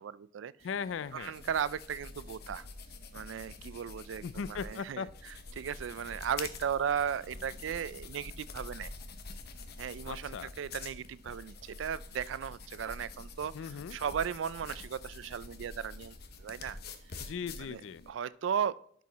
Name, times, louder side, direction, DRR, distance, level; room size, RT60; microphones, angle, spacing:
voice 1, 0.0-0.5 1.1-2.7 3.1-8.9 9.8-13.5 13.9-16.8 17.6-17.8 18.1-19.0, right 8 dB, 90° right, 19 dB, 0.4 m, -36 dB
voice 2, 0.6-1.3 4.2-5.1 10.1-10.5 13.5-14.0 17.2-18.0, left 6 dB, 85° left, 17 dB, 0.4 m, -38 dB
sound 1, 0.6-18.1, left 3 dB, 55° left, 0.9 m, -47 dB
11.5 x 4.8 x 4.0 m, 0.65 s
head